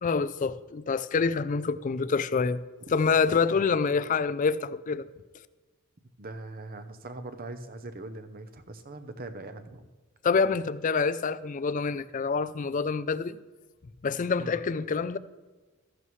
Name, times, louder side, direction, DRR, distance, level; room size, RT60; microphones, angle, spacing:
voice 1, 0.0-2.6 2.9-5.1 10.2-13.4 14.0-15.2, left 5 dB, 35° left, 0.3 m, -26 dB
voice 2, 6.2-9.9 14.4-14.6, right 2 dB, 40° right, 0.7 m, -41 dB
14.0 x 11.0 x 3.2 m
head